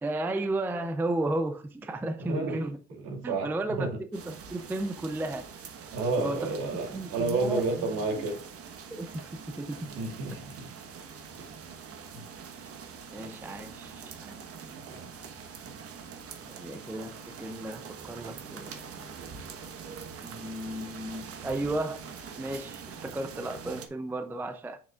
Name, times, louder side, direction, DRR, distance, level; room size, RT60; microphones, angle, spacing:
voice 1, 0.0-2.8 3.2-5.5 5.8-5.9 6.2-6.6 6.9-8.3 8.9-9.8 13.1-14.4 16.5-18.9 20.2-22.1 22.4-24.8, right 2 dB, 5° right, 0.4 m, -34 dB
voice 2, 2.2-2.6 2.9-4.0 5.9-8.4 9.8-10.7 11.4-11.5 14.9-15.5, right 3 dB, 60° right, 2.8 m, -31 dB
sound 1, 4.1-23.9, right 6 dB, 35° right, 1.2 m, -44 dB
7.5 x 5.8 x 2.4 m
supercardioid pair, 115°, 39 cm